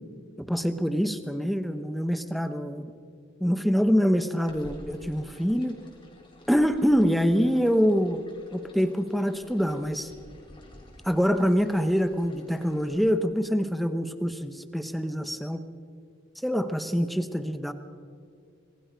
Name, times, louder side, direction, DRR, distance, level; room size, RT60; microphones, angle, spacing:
voice 1, 0.4-2.9 3.4-5.8 6.5-8.2 8.5-10.1 11.0-15.6 16.4-17.7, equal, ahead, 10 dB, 1.0 m, -25 dB
sound 1, 4.5-13.1, left 1 dB, 25° left, 3.7 m, -51 dB
26.0 x 20.5 x 5.2 m, 2.2 s
head